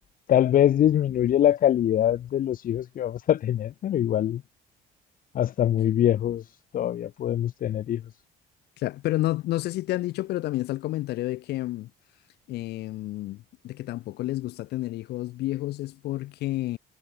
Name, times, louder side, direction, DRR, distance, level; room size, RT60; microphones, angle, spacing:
voice 1, 0.3-4.4 5.3-8.0, left 11 dB, 55° left, 1.7 m, -23 dB
voice 2, 8.8-11.9 12.5-16.8, left 16 dB, 75° left, 1.2 m, -30 dB
cardioid pair, 110°, 17 cm